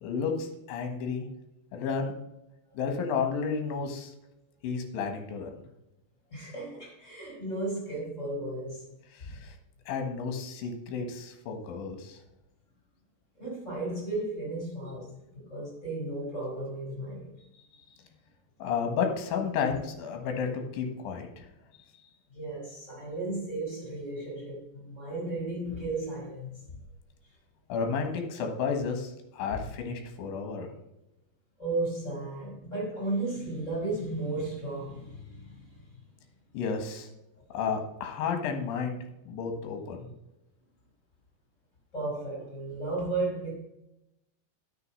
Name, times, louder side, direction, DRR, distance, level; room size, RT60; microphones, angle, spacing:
voice 1, 0.0-1.3 1.7-2.1 2.7-4.1 4.6-5.5 9.1-9.5 9.9-12.2 18.6-21.5 27.7-30.7 36.5-37.1 37.5-39.0 39.3-40.1, left 5 dB, 65° left, 2.8 m, -32 dB
voice 2, 6.3-8.8 9.2-9.3 13.4-17.3 22.3-26.6 31.6-35.7 41.9-43.5, right 2 dB, 15° left, 3.9 m, -34 dB
9.4 x 6.4 x 5.5 m
omnidirectional pair, 5.2 m